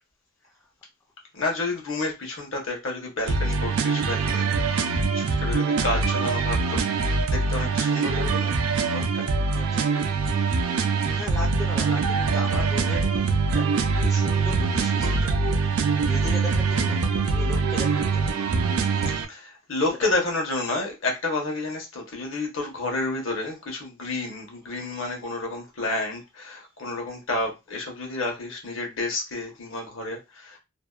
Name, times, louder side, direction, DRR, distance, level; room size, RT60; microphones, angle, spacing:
voice 1, 1.3-8.6 8.9-9.3 19.2-30.6, left 2 dB, 70° left, 0.9 m, -30 dB
sound 1, 3.3-19.3, right 4 dB, 85° right, 0.4 m, -23 dB
voice 2, 9.5-10.0 11.1-18.4 19.9-20.2 24.6-24.9, left 2 dB, 15° left, 0.4 m, -38 dB
2.7 x 2.1 x 2.3 m
head